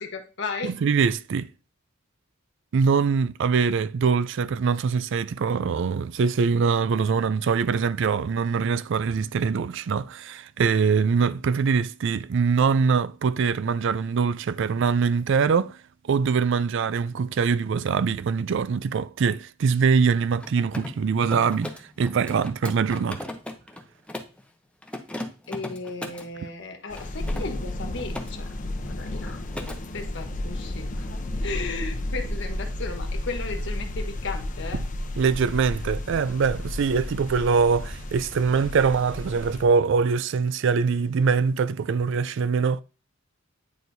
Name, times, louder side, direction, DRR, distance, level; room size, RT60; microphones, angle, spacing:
voice 1, 0.0-0.7 25.5-28.5 28.9-34.8, left 3 dB, 60° left, 1.2 m, -35 dB
voice 2, 0.6-1.5 2.7-15.8 16.0-23.3 35.2-42.8, right 5 dB, 65° right, 0.4 m, -23 dB
Mechanisms, 20.3-24.4 24.8-26.3 26.9-28.3 28.6-28.9 29.2-29.8, left 1 dB, 5° left, 0.7 m, -37 dB
sound 1, 26.9-39.6, left 1 dB, 40° left, 0.7 m, -32 dB
9.3 x 4.5 x 2.6 m
head